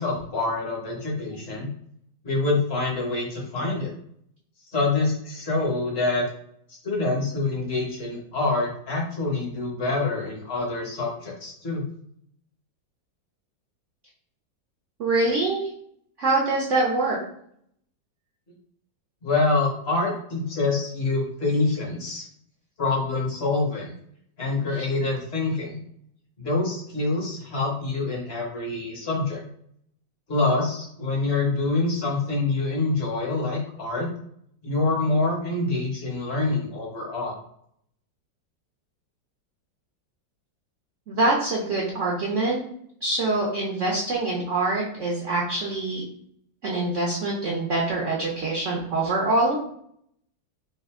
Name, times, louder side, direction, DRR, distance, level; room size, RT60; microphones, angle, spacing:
voice 1, 0.0-1.7 2.2-3.9 4.7-6.2 6.8-11.8 19.2-22.2 22.8-23.9 24.4-25.8 26.4-29.4 30.3-34.1 34.6-37.3, left 3 dB, 40° left, -2 dB, 1.2 m, -26 dB
voice 2, 15.0-15.7 16.2-17.2 41.1-42.6 43.0-46.0 46.6-49.6, right 2 dB, 55° right, -3 dB, 0.9 m, -24 dB
3.4 x 2.5 x 3.6 m, 0.69 s
omnidirectional pair, 2.0 m